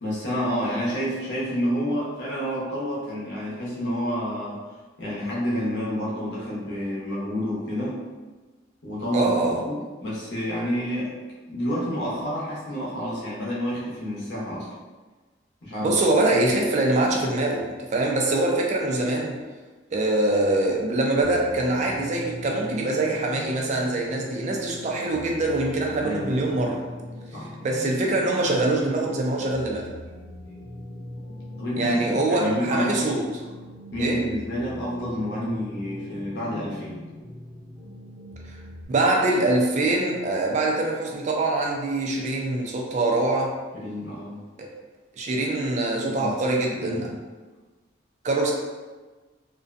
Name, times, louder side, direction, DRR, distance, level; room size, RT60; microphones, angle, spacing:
voice 1, 0.0-4.6 5.0-8.0 8.8-9.3 9.6-11.1 11.5-14.7 15.6-16.0 26.0-26.4 27.3-27.5 31.6-32.9 33.9-37.0 43.7-44.4 46.0-46.3 46.8-47.2, equal, 65° left, -6 dB, 0.8 m, -29 dB
voice 2, 9.1-9.6 15.8-19.4 19.9-26.9 27.6-29.9 31.8-33.2 34.0-34.2 38.9-43.6 44.6-44.7 45.2-47.0 48.2-48.5, right 2 dB, 40° right, 0 dB, 0.3 m, -24 dB
sound 1, 21.2-38.8, left 1 dB, 10° left, 0.8 m, -41 dB
2.5 x 2.1 x 2.4 m, 1.3 s
head